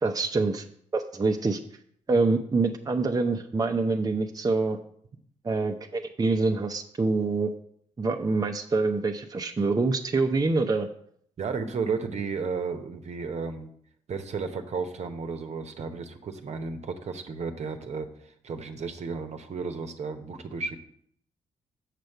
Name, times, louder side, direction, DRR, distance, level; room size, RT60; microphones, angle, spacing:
voice 1, 0.0-0.6 0.9-1.6 2.1-4.8 5.4-7.5 8.0-10.9, right 3 dB, 25° right, 4 dB, 0.7 m, -25 dB
voice 2, 11.4-13.7 14.1-20.8, right 5 dB, 50° right, 6 dB, 1.0 m, -33 dB
6.7 x 6.4 x 4.7 m, 0.65 s
hypercardioid pair, 45°, 14 cm